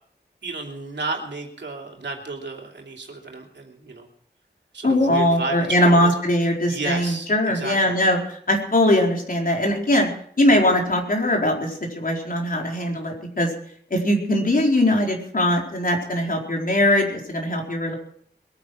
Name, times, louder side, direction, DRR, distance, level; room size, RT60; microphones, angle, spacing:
voice 1, 0.4-4.1 4.7-6.1 6.7-7.9, right 3 dB, 90° right, 1 dB, 3.0 m, -32 dB
voice 2, 4.8-10.1 10.4-13.5 13.9-17.9, left 1 dB, 55° left, 1 dB, 4.4 m, -21 dB
21.5 x 9.4 x 6.3 m, 0.62 s
wide cardioid pair, 75°, 18 cm